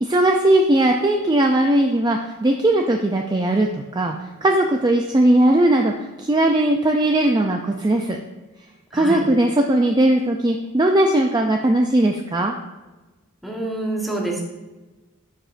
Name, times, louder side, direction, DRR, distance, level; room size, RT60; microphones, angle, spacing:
voice 1, 0.0-3.7 3.9-4.2 4.4-5.9 6.2-8.2 8.9-12.5, right 1 dB, 20° right, 3 dB, 0.4 m, -18 dB
voice 2, 8.9-9.2 13.4-14.4, right 2 dB, ahead, -2 dB, 1.1 m, -27 dB
12.0 x 4.9 x 2.5 m, 1.2 s
head